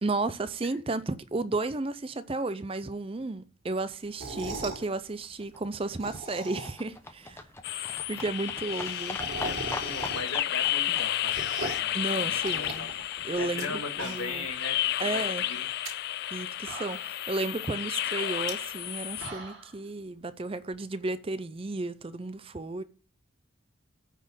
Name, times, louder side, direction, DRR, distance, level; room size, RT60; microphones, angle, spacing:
voice 1, 0.0-7.4 7.7-9.2 11.9-12.9 13.2-14.5 15.0-15.4 16.3-22.8, right 2 dB, 25° right, 0.5 m, -33 dB
sound 1, 4.1-4.9 5.8-7.0 7.3-7.4 7.6-7.7 7.9-8.0 8.3-10.5 10.8-11.9 12.4-13.6 13.9-14.5 14.8-14.9 15.6-15.9 16.4-16.5 16.7-17.3 18.3-18.5 19.0-19.7, right 2 dB, 75° right, 3.9 m, -39 dB
Livestock farm animals working animals, 5.1-13.2 13.4-13.5 13.7-13.8 14.0-14.1 14.3-14.4 14.6-14.7 15.0-15.1 15.3-15.4 15.6-15.7, left 2 dB, 10° left, 0.7 m, -43 dB
sound 2, 7.6-19.3, left 13 dB, 50° left, 0.3 m, -32 dB
voice 2, 9.4-12.9 13.4-15.7, left 3 dB, 85° left, 1.9 m, -39 dB
9.1 x 4.3 x 6.9 m
head